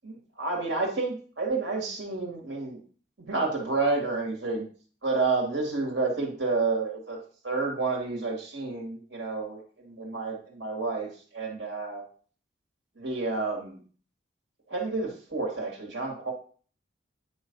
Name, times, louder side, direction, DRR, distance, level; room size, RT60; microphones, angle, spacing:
voice 1, 0.0-2.8 3.2-4.6 5.0-7.2 7.4-12.0 13.0-13.8 14.7-16.3, right 3 dB, 70° right, 0 dB, 2.3 m, -30 dB
9.5 x 3.2 x 5.4 m, 0.43 s
head